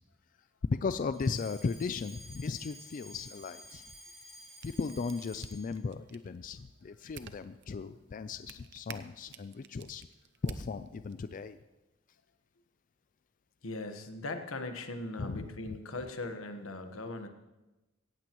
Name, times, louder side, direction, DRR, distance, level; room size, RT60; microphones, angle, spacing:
voice 1, 0.7-3.8 4.6-10.1 10.4-11.6 15.2-15.8, left 4 dB, 40° left, 12 dB, 0.4 m, -36 dB
Alarm, 1.1-5.8, equal, ahead, 4.8 m, -52 dB
sound 1, 4.3-11.4, right 5 dB, 60° right, 0.7 m, -52 dB
voice 2, 13.6-17.3, left 2 dB, 90° left, 6 dB, 1.3 m, -39 dB
17.5 x 15.0 x 3.0 m, 1.0 s
head